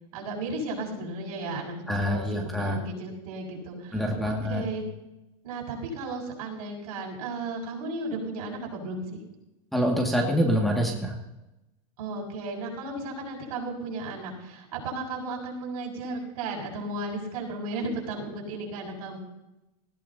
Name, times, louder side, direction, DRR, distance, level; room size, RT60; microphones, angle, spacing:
voice 1, 0.1-4.8 5.4-9.0 12.0-19.2, right 2 dB, 70° right, -1 dB, 6.2 m, -34 dB
voice 2, 1.9-2.8 3.9-4.6 9.7-11.1, equal, ahead, -2 dB, 2.1 m, -25 dB
19.0 x 15.5 x 2.8 m, 0.95 s
supercardioid pair, 130°, 19 cm